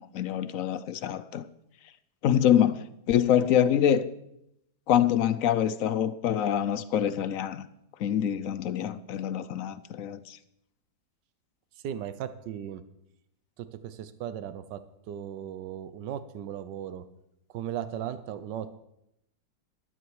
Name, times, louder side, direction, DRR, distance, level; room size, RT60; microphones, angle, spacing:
voice 1, 0.0-1.4 2.2-2.8 3.1-4.1 4.9-7.7 8.0-10.4, left 10 dB, 65° left, 0.9 m, -25 dB
voice 2, 11.8-12.8 13.6-14.8 15.1-17.0 17.5-18.8, right 10 dB, 85° right, 1.4 m, -37 dB
12.5 x 12.5 x 4.8 m
omnidirectional pair, 1.9 m